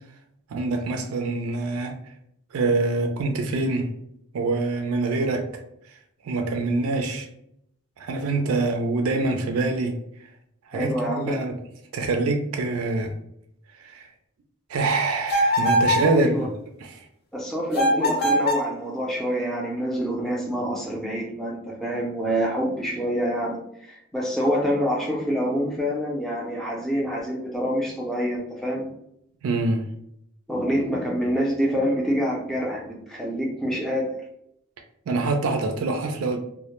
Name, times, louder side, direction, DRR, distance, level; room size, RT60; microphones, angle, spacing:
voice 1, 0.5-2.0 2.5-3.9 4.3-5.4 6.2-7.3 8.0-10.0 10.7-11.5 11.9-13.1 13.8-14.1 14.7-16.4 16.8-17.0 29.4-29.8 35.1-36.4, right 3 dB, 80° right, 0.4 m, -25 dB
voice 2, 10.7-11.3 16.1-16.5 17.3-28.9 30.5-34.2, equal, ahead, 0.4 m, -26 dB
sound 1, 15.3-16.1 17.7-18.7, equal, 45° left, 0.6 m, -21 dB
2.1 x 2.0 x 2.9 m
head